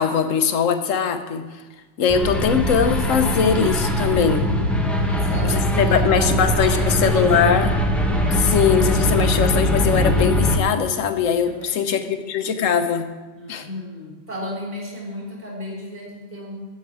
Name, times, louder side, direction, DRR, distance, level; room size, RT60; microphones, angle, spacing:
voice 1, 0.0-1.5 2.0-4.5 5.4-7.7 8.3-13.1 13.5-13.7, left 7 dB, 85° left, 8 dB, 1.2 m, -21 dB
sound 1, 2.1-10.6, left 1 dB, ahead, 0.8 m, -21 dB
voice 2, 4.9-7.6 11.4-12.3 13.3-16.7, left 1 dB, 30° right, -3 dB, 4.1 m, -34 dB
14.0 x 7.0 x 4.8 m, 1.3 s
omnidirectional pair, 1.3 m